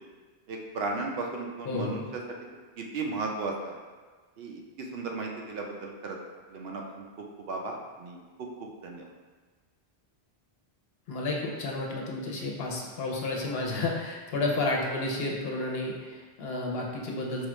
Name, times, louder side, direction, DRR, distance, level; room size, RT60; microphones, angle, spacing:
voice 1, 0.5-2.0 2.8-3.8 4.4-4.6 4.9-6.2 6.5-7.0 7.5-8.2 8.8-9.1, right 3 dB, 70° right, 1 dB, 0.8 m, -35 dB
voice 2, 1.6-2.0 11.1-17.5, left 2 dB, 70° left, -1 dB, 0.8 m, -31 dB
4.7 x 2.3 x 3.0 m, 1.4 s
omnidirectional pair, 1.1 m